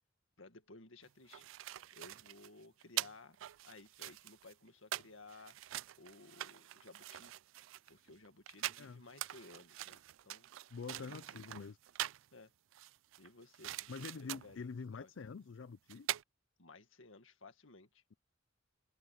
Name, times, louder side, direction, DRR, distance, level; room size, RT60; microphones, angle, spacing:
voice 1, 0.4-1.5 1.9-3.4 3.6-5.6 6.0-7.3 7.9-10.5 11.0-11.7 12.3-12.5 13.2-14.7 14.9-15.1 16.6-18.0, left 3 dB, 85° left, 2.0 m, -57 dB
sound 1, 1.0-12.3 12.7-14.6 15.6-15.7 15.9-16.2, right 14 dB, 80° right, 0.3 m, -44 dB
voice 2, 10.7-11.8 13.9-16.1, left 5 dB, 70° left, 0.5 m, -46 dB
head